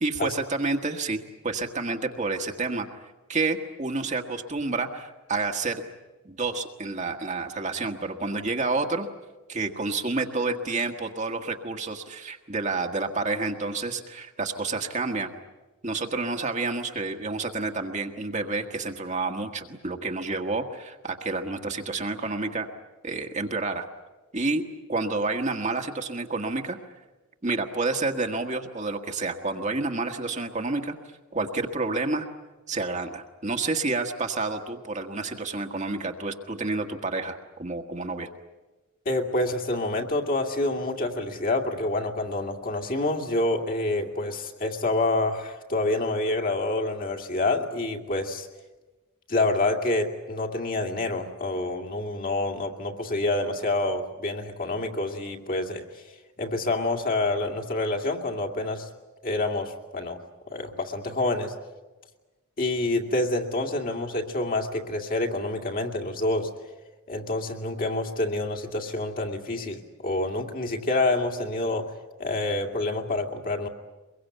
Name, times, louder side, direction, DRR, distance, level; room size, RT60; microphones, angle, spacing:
voice 1, 0.0-2.9 3.3-5.8 6.2-9.1 9.5-15.3 15.8-22.7 23.0-23.9 24.3-24.6 24.9-26.8 27.4-30.9 31.3-32.3 32.7-38.3, right 3 dB, 35° right, 4 dB, 1.5 m, -29 dB
voice 2, 39.1-48.5 49.3-55.9 56.4-58.9 59.2-60.2 60.5-61.6 62.6-66.5 67.1-73.7, left 2 dB, 40° left, 4 dB, 2.3 m, -27 dB
24.0 x 22.5 x 9.2 m, 1.2 s
head